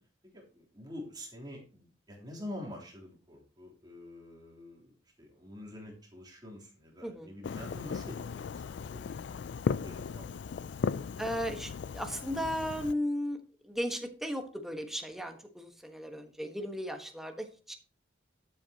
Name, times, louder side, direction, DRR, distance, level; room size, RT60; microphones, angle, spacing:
voice 1, 0.3-4.9 5.2-9.0 9.7-10.4, left 1 dB, 20° right, -3 dB, 3.3 m, -46 dB
Fireworks, 7.4-12.9, left 5 dB, 60° left, 0.3 m, -36 dB
voice 2, 11.2-13.4 13.6-17.7, equal, ahead, 4 dB, 1.3 m, -36 dB
12.5 x 8.2 x 2.9 m, 0.38 s
head